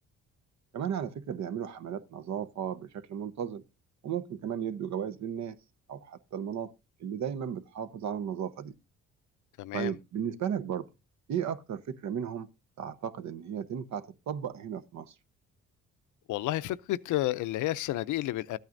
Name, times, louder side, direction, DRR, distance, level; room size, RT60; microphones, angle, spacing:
voice 1, 0.7-3.6 4.0-5.5 5.9-6.7 7.0-8.7 9.7-10.9 11.3-12.5 12.8-15.1, right 8 dB, 65° right, 0.9 m, -35 dB
voice 2, 9.6-9.9 16.3-18.6, left 15 dB, 80° left, 0.5 m, -31 dB
13.5 x 9.1 x 2.6 m
cardioid pair, 90°, 30 cm